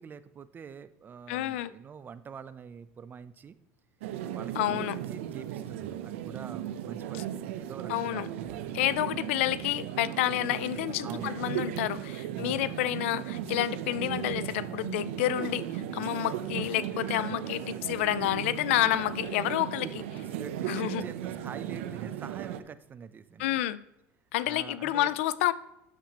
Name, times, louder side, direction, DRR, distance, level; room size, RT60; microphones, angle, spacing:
voice 1, 0.0-3.6 4.3-8.8 11.0-11.4 12.3-12.9 18.9-19.1 19.8-19.9 20.3-23.6 24.4-25.1, right 6 dB, 30° right, 14 dB, 0.6 m, -45 dB
voice 2, 1.3-1.7 4.6-5.0 7.9-8.3 8.7-19.9 20.7-21.0 23.4-23.8 24.3-25.5, left 14 dB, 85° left, 18 dB, 0.4 m, -29 dB
sound 1, 4.0-22.6, right 11 dB, 85° right, 0.6 m, -36 dB
9.9 x 7.4 x 2.9 m, 0.87 s
supercardioid pair, 105°, 7 cm